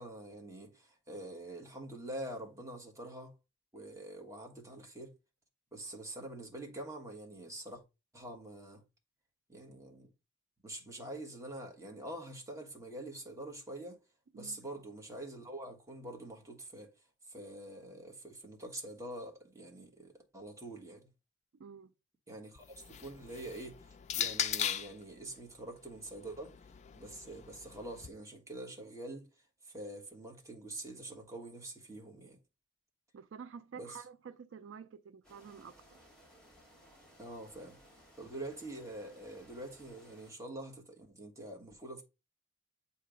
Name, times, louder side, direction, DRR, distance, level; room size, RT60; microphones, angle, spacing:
voice 1, 0.0-3.3 3.7-5.1 5.7-7.8 8.1-8.8 9.5-10.1 10.6-14.0 14.3-16.9 17.3-21.1 22.3-26.5 26.9-29.3 29.6-32.4 33.8-34.0 37.2-37.8 38.2-42.0, right 1 dB, 15° right, 1.3 m, -45 dB
voice 2, 21.6-21.9 33.1-36.0, right 6 dB, 75° right, 0.4 m, -49 dB
sound 1, 22.6-25.0 26.0-28.1, left 9 dB, 35° left, 0.3 m, -39 dB
sound 2, 35.2-40.3, equal, 5° left, 2.2 m, -61 dB
7.5 x 2.9 x 5.0 m
head